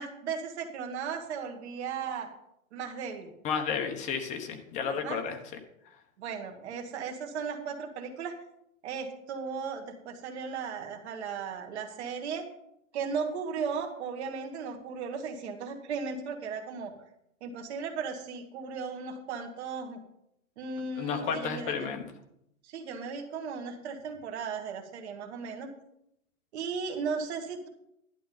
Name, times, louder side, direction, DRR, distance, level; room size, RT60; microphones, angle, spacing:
voice 1, 0.0-2.3 2.7-3.3 4.9-5.2 6.2-8.3 8.8-12.5 12.9-16.9 17.4-20.0 20.6-22.1 22.6-25.7 26.5-27.7, right 5 dB, 50° right, 3 dB, 2.1 m, -36 dB
voice 2, 3.4-5.4 21.0-22.0, left 6 dB, 15° left, 5 dB, 0.9 m, -32 dB
11.5 x 11.5 x 3.9 m, 0.79 s
hypercardioid pair, 160°, 42 cm